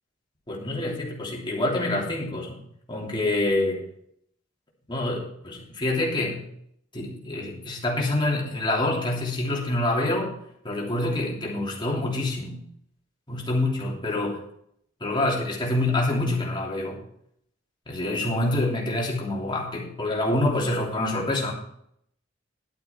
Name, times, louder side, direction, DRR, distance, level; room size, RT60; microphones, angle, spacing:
voice 1, 0.5-2.6 2.9-3.8 4.9-6.4 6.9-10.3 10.6-12.6 13.3-14.4 15.0-17.0 17.9-21.5, left 2 dB, 25° left, -3 dB, 3.0 m, -26 dB
11.5 x 8.9 x 4.5 m, 0.70 s
head